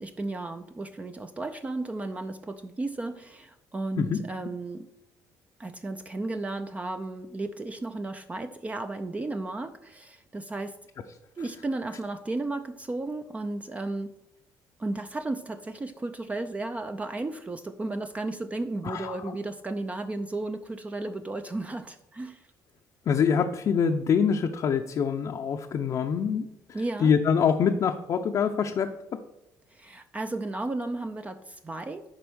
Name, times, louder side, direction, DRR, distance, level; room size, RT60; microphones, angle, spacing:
voice 1, 0.0-4.9 5.6-10.8 11.4-14.1 14.8-22.5 26.7-27.1 29.7-32.0, right 2 dB, 20° right, 7 dB, 0.5 m, -34 dB
voice 2, 18.8-19.2 23.1-26.4 27.0-28.9, left 7 dB, 50° left, 3 dB, 0.6 m, -25 dB
10.5 x 4.2 x 6.2 m, 0.88 s
cardioid pair, 115°, 7 cm